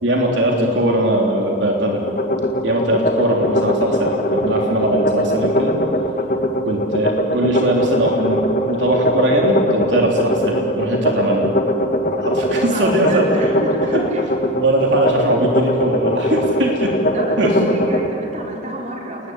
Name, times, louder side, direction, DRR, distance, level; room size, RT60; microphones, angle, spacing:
voice 1, 0.0-2.0 2.6-5.8 6.7-8.4 8.7-11.4 12.2-13.6 13.9-14.0 14.5-17.0 17.4-17.8, right 1 dB, 75° right, 0 dB, 3.5 m, -20 dB
sound 1, 2.1-18.1, equal, 45° left, 1.9 m, -20 dB
voice 2, 12.5-14.2 17.1-19.3, right 1 dB, 40° right, -1 dB, 4.9 m, -30 dB
29.5 x 21.0 x 9.6 m, 2.9 s
head